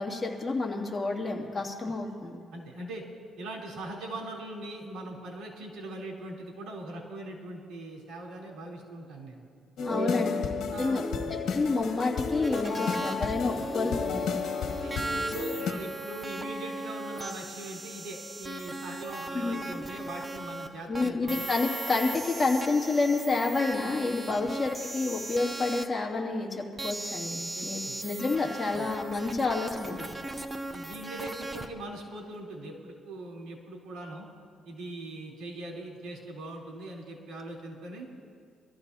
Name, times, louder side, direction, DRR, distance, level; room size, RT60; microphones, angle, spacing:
voice 1, 0.0-2.4 9.9-10.3 10.8-11.1 11.5-14.4 19.3-19.6 20.9-30.0, left 3 dB, 20° left, -3 dB, 2.7 m, -29 dB
voice 2, 2.5-3.0 3.4-9.4 9.9-11.3 13.5-13.7 14.7-21.4 24.4-24.5 27.5-27.9 28.7-28.9 30.7-34.3 34.6-38.0, right 1 dB, 85° right, -4 dB, 4.3 m, -41 dB
sound 1, 9.8-15.7, left 5 dB, 70° left, 1.6 m, -32 dB
sound 2, 12.4-20.7 20.9-25.8 26.8-31.7, right 2 dB, 20° right, 0.9 m, -38 dB
25.0 x 14.5 x 2.9 m, 2.3 s
cardioid pair, 95°, 0 cm